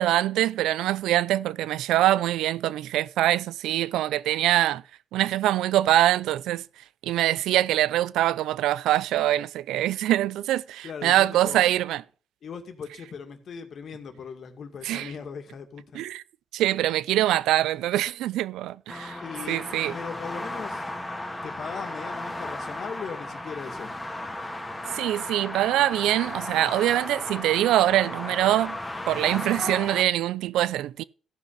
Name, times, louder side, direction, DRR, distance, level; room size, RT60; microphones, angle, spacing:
voice 1, 0.0-4.8 5.1-6.6 7.0-12.0 14.8-15.1 15.9-16.2 16.5-19.2 19.5-19.9 24.9-28.8 29.1-31.0, right 13 dB, 85° right, 0.4 m, -24 dB
voice 2, 10.8-11.7 12.4-15.8 19.2-19.6 19.9-20.9 21.4-23.9, left 6 dB, 55° left, 2.1 m, -38 dB
sound 1, 18.9-30.0, left 1 dB, 10° left, 2.1 m, -35 dB
14.5 x 5.8 x 5.5 m
cardioid pair, 90°, 0 cm